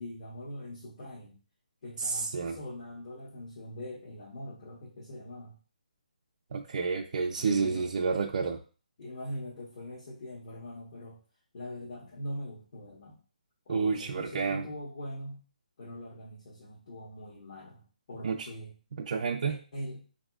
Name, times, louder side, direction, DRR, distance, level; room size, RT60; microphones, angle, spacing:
voice 1, 0.0-1.4 1.8-5.6 7.4-7.8 9.0-11.2 11.5-13.2 13.7-15.4 15.8-18.7 19.7-20.0, left 1 dB, 45° left, -6 dB, 1.1 m, -42 dB
voice 2, 2.0-2.6 6.5-8.6 13.7-14.6 18.2-18.5 19.0-19.6, right 5 dB, 50° right, 0 dB, 0.4 m, -30 dB
4.1 x 2.6 x 2.3 m, 0.36 s
hypercardioid pair, 160°, 5 cm